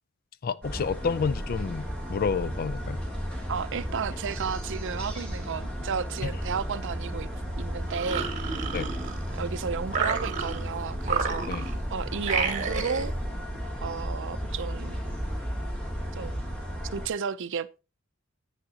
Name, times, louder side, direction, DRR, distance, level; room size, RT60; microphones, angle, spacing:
voice 1, 0.4-3.0 6.2-6.3 8.7-8.9 11.5-11.6, left 5 dB, 45° left, 0.4 m, -29 dB
sound 1, 0.6-17.1, equal, 5° left, 2.0 m, -34 dB
voice 2, 3.5-7.3 7.6-8.3 9.3-13.1 13.8-15.0 16.2-16.3 16.9-17.7, right 6 dB, 60° right, 0.5 m, -33 dB
sound 2, 7.9-9.4 9.9-10.7 11.0-11.8 12.2-13.1, right 5 dB, 35° right, 1.5 m, -31 dB
9.9 x 8.9 x 2.8 m
head